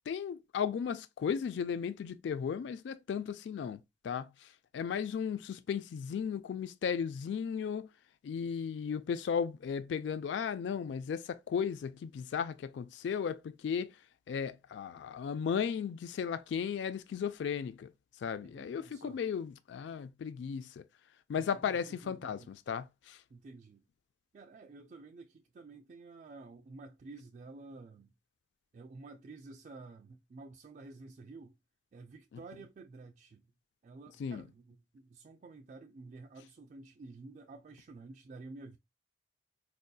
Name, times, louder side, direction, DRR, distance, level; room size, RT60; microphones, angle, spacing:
voice 1, 0.1-7.9 8.2-14.0 14.3-17.9 18.2-20.8 21.3-23.2 34.2-34.4, left 7 dB, 70° left, 0.3 m, -35 dB
voice 2, 18.4-19.2 21.5-22.5 23.3-23.8 24.3-28.1 28.7-31.6 31.9-33.4 33.8-38.8, right 3 dB, 40° right, 0.3 m, -51 dB
4.5 x 2.6 x 2.2 m
head